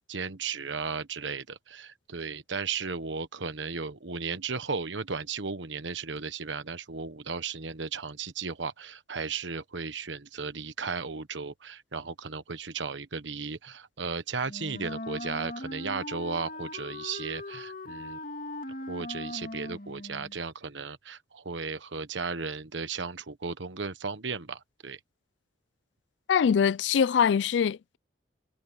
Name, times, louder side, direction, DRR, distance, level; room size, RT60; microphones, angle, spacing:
voice 1, 0.0-18.2 18.9-25.0, right 5 dB, 85° right, 1.2 m, -35 dB
Wind instrument woodwind instrument, 14.4-20.4, left 1 dB, 50° left, 3.4 m, -39 dB
voice 2, 26.3-28.0, left 7 dB, 80° left, 0.3 m, -23 dB
head